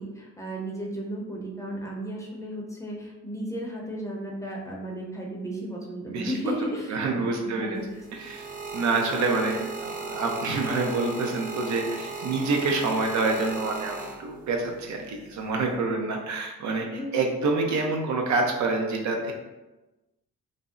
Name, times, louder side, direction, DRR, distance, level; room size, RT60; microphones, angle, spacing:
voice 1, 0.0-8.0 9.4-9.6 16.9-17.2, equal, 10° left, -3 dB, 0.7 m, -34 dB
voice 2, 6.9-7.8 8.1-8.5 8.7-19.3, right 3 dB, 70° right, 1 dB, 0.6 m, -27 dB
sound 1, 7.8-14.6 15.4-15.7, right 3 dB, 30° right, 0.5 m, -36 dB
2.6 x 2.0 x 3.6 m, 1.1 s
cardioid pair, 90°, 30 cm